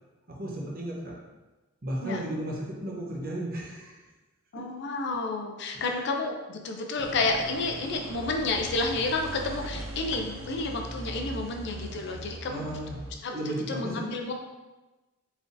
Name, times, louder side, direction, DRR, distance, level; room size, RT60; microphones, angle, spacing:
voice 1, 0.3-1.1 1.8-4.0 5.7-6.0 12.5-13.0 13.3-14.0, right 1 dB, 45° right, -3 dB, 0.9 m, -34 dB
voice 2, 4.5-12.7 13.2-13.4 13.7-14.3, left 3 dB, 55° left, 2 dB, 0.5 m, -30 dB
sound 1, 7.0-13.1, right 1 dB, 70° right, 0.5 m, -40 dB
4.4 x 3.4 x 2.6 m, 1.1 s
head